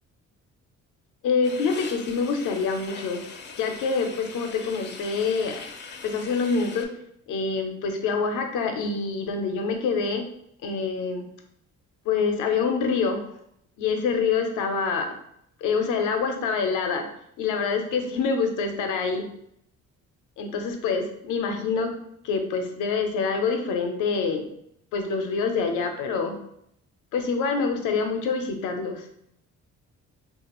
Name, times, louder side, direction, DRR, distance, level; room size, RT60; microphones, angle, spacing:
voice 1, 1.2-3.2 3.6-5.6 6.0-6.9 7.3-10.2 10.6-11.2 12.1-13.2 13.8-15.1 15.6-17.1 17.4-19.3 20.4-21.9 22.2-24.4 24.9-26.4 27.1-29.1, left 5 dB, 85° left, 5 dB, 0.6 m, -26 dB
sound 1, 1.4-6.9, left 5 dB, 35° left, 0.4 m, -41 dB
3.2 x 2.4 x 2.9 m, 0.73 s
cardioid pair, 90°, 30 cm